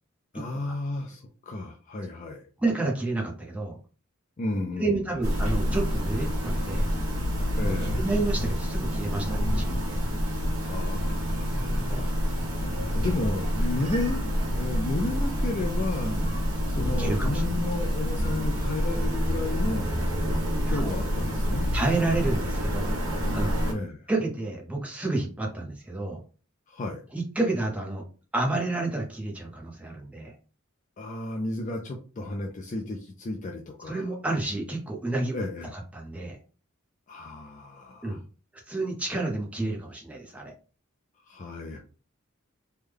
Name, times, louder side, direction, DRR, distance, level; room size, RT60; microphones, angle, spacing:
voice 1, 0.3-2.5 4.4-5.2 7.5-8.0 10.7-12.5 12.9-14.2 14.5-16.1 16.7-19.9 20.7-21.7 23.7-24.1 26.7-27.0 31.0-34.1 35.3-35.8 37.1-38.2 41.2-41.8, left 2 dB, 35° left, 2 dB, 0.4 m, -33 dB
voice 2, 2.6-3.8 4.8-6.9 8.0-10.0 11.9-12.1 16.0-16.3 17.0-17.4 20.7-20.9 21.7-23.0 23.3-23.5 24.1-26.2 27.1-28.0 28.3-30.3 33.9-35.3 35.7-36.4 38.0-38.2 38.7-40.5, right 2 dB, 5° right, -1 dB, 0.7 m, -30 dB
sound 1, 5.2-23.7, equal, 65° right, 1.2 m, -27 dB
3.3 x 2.2 x 3.4 m, 0.37 s
head